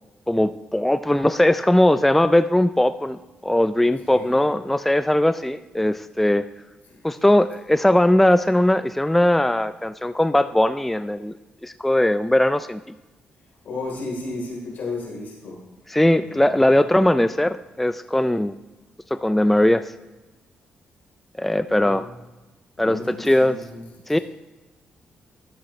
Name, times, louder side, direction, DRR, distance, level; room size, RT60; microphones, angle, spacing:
voice 1, 0.3-6.4 7.0-11.3 11.6-12.8 15.9-18.5 19.1-19.8 21.4-22.1 22.8-23.5 24.1-24.2, left 1 dB, 5° left, 12 dB, 0.3 m, -19 dB
voice 2, 4.1-4.4 13.6-15.6 16.2-16.7 21.6-22.1 22.8-23.8, left 3 dB, 75° left, -1 dB, 3.4 m, -33 dB
13.0 x 7.5 x 3.1 m, 1.1 s
cardioid pair, 90°, 3 cm